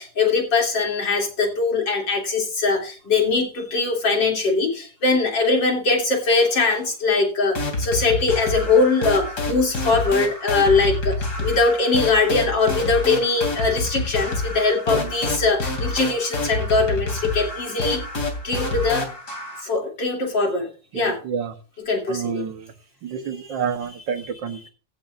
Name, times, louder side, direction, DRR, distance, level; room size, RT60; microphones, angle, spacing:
voice 1, 0.0-18.0 18.4-19.1 19.6-21.2 21.9-22.5 23.2-23.6, left 3 dB, 90° left, 1 dB, 3.8 m, -21 dB
sound 1, 7.5-19.6, left 2 dB, 65° left, 3.7 m, -28 dB
voice 2, 20.9-21.5 22.1-22.7 23.0-24.7, right 7 dB, 85° right, 8 dB, 1.9 m, -29 dB
15.5 x 11.5 x 2.6 m, 0.37 s
omnidirectional pair, 1.9 m